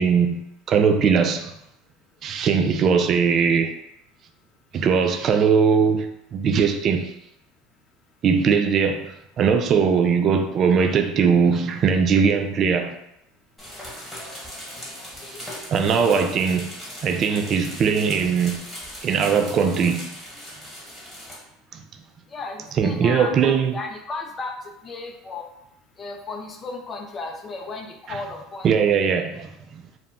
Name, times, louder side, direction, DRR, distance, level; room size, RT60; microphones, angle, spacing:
voice 1, 0.0-1.5 2.2-3.7 4.7-7.1 8.2-13.0 15.7-16.7 17.0-18.7 19.0-20.1 21.7-21.8 22.8-23.7 28.1-28.2 28.6-29.8, right 6 dB, 45° right, 0.3 m, -20 dB
sound 1, 13.6-21.4, equal, 5° left, 1.4 m, -39 dB
voice 2, 15.0-15.4 22.3-24.5 24.8-25.5 26.0-28.7, left 3 dB, 30° left, 0.5 m, -35 dB
2.3 x 2.2 x 3.7 m
supercardioid pair, 105°, 0 cm